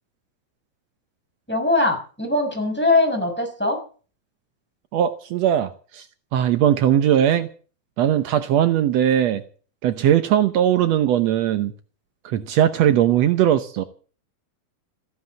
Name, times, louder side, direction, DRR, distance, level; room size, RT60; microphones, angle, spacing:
voice 1, 1.5-3.8, left 2 dB, 5° left, 2 dB, 6.0 m, -21 dB
voice 2, 4.9-6.1 6.3-7.5 8.0-9.4 9.8-11.7 12.2-13.8, right 10 dB, 85° right, 11 dB, 1.4 m, -19 dB
15.0 x 11.5 x 7.7 m, 0.40 s
omnidirectional pair, 4.3 m